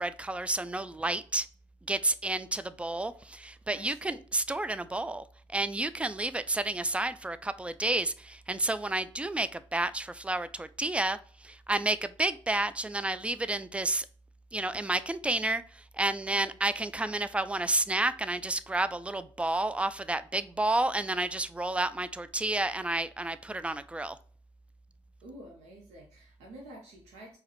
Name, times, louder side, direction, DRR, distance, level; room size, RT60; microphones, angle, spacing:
voice 1, 0.0-1.5 1.9-5.2 5.5-14.1 14.5-24.2, right 2 dB, 10° right, 0.3 m, -30 dB
voice 2, 3.7-4.2 16.3-16.6 25.2-27.4, right 1 dB, 65° right, 0.8 m, -49 dB
4.6 x 2.1 x 3.0 m
hypercardioid pair, 45°, 13 cm